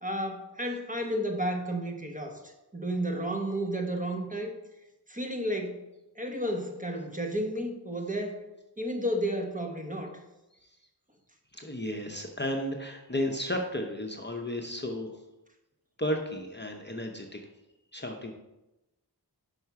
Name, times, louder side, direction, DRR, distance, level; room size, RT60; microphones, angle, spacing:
voice 1, 0.0-4.6 5.1-5.8 6.1-8.4 8.8-10.1, equal, 20° right, 2 dB, 1.0 m, -32 dB
voice 2, 11.5-15.1 16.0-17.4 17.9-18.3, left 1 dB, 25° left, 3 dB, 0.7 m, -33 dB
5.6 x 5.3 x 4.6 m, 0.97 s
wide cardioid pair, 50°, 41 cm